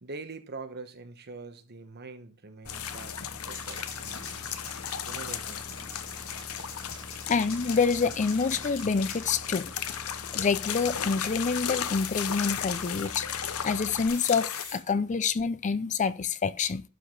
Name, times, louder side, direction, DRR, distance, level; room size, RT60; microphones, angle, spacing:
voice 1, 0.0-3.2 3.5-4.4 5.1-5.7, right 3 dB, 50° right, 1.2 m, -43 dB
sound 1, 2.6-14.1, left 1 dB, 15° left, 1.4 m, -47 dB
sound 2, 2.7-14.6, left 9 dB, 70° left, 0.8 m, -36 dB
sound 3, 3.5-10.1 10.6-13.2 14.1-14.8, left 5 dB, 85° left, 6.0 m, -45 dB
voice 2, 7.3-9.7 10.3-13.2 13.6-16.8, left 5 dB, 35° left, 0.5 m, -27 dB
12.0 x 4.9 x 5.4 m
head